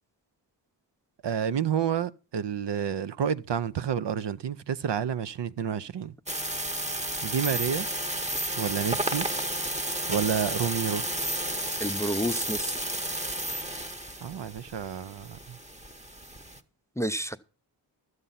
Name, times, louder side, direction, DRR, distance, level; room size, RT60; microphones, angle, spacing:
voice 1, 1.2-6.1 7.2-7.9 8.6-9.3 10.1-11.0 14.2-15.6, right 8 dB, 65° right, 0.7 m, -29 dB
sound 1, 6.3-16.6, right 1 dB, 15° right, 1.0 m, -32 dB
voice 2, 11.8-12.8 17.0-17.4, equal, 5° left, 0.6 m, -30 dB
12.5 x 8.1 x 5.6 m
cardioid pair, 55°, 46 cm